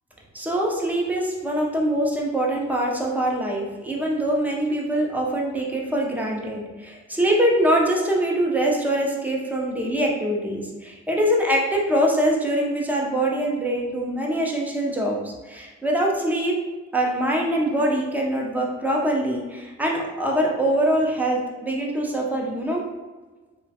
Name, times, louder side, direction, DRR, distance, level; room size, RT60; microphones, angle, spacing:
voice 1, 0.3-16.6 16.9-22.8, right 1 dB, 5° right, -2 dB, 0.5 m, -23 dB
3.0 x 2.2 x 2.7 m, 1.3 s
cardioid pair, 90°, 30 cm